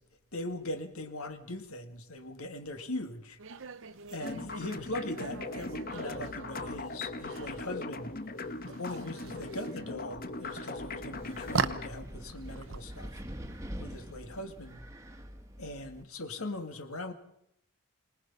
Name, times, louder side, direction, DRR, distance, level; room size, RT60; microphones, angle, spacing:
voice 1, 0.3-3.4 4.1-8.1 8.7-13.2 13.8-14.9 15.6-17.1, left 1 dB, 80° left, 2.1 m, -40 dB
sound 1, 3.4-14.7, right 5 dB, 60° right, 0.8 m, -41 dB
sound 2, 4.2-11.9, left 2 dB, 45° left, 1.2 m, -39 dB
Wind, 10.8-16.0, equal, 15° right, 1.4 m, -45 dB
25.5 x 19.5 x 5.6 m
head